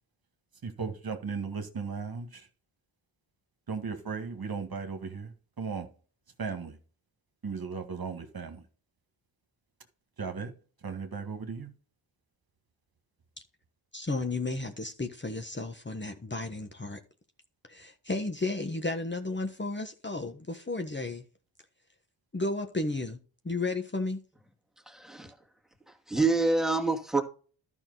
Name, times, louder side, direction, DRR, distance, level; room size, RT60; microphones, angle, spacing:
voice 1, 0.6-2.5 3.7-5.9 6.4-6.8 7.4-8.6 10.2-10.5 10.8-11.7, right 5 dB, 45° right, 1.8 m, -36 dB
voice 2, 13.9-17.0 17.7-21.2 22.3-23.2 23.4-24.2, left 2 dB, 20° left, 1.3 m, -33 dB
voice 3, 24.9-25.3 25.9-27.2, right 3 dB, ahead, 2.3 m, -27 dB
12.0 x 6.1 x 4.0 m
cardioid pair, 80°, 49 cm